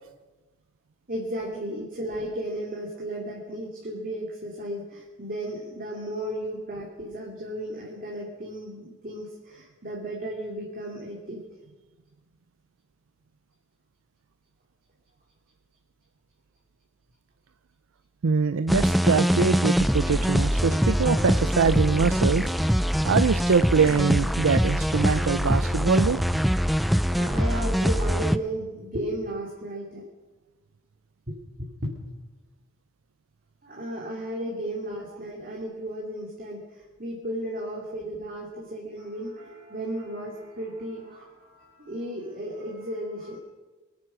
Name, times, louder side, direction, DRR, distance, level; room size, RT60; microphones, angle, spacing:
voice 1, 1.1-11.4 27.1-30.0 31.3-31.9 33.6-43.4, right 1 dB, 45° right, -2 dB, 2.5 m, -34 dB
voice 2, 18.2-22.5 23.1-26.4, right 5 dB, 90° right, 11 dB, 0.5 m, -24 dB
sound 1, 18.7-28.4, equal, ahead, 0.4 m, -23 dB
23.5 x 9.6 x 6.1 m, 1.2 s
head